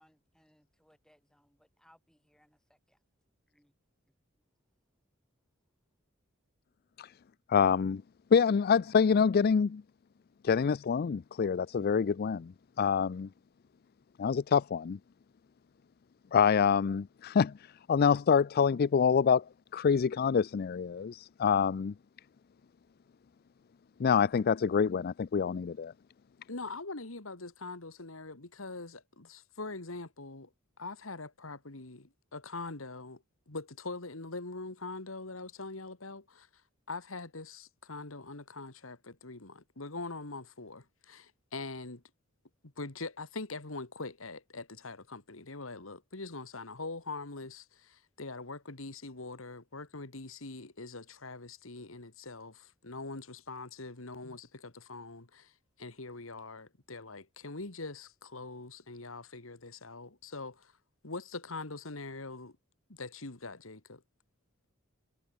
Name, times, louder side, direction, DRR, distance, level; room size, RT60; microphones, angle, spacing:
voice 1, 0.0-3.0 3.5-3.7 4.1-4.5, equal, 5° left, 6.7 m, -68 dB
voice 2, 7.5-8.0 8.3-9.8 10.4-12.5 12.8-13.3 14.2-15.0 16.3-17.5 17.9-19.4 19.7-21.9 24.0-25.9, left 6 dB, 50° left, 0.4 m, -26 dB
voice 3, 26.5-30.5 30.8-36.6 36.9-42.0 42.8-55.5 55.8-60.7 61.0-62.6 62.9-64.0, left 3 dB, 80° left, 2.3 m, -43 dB
head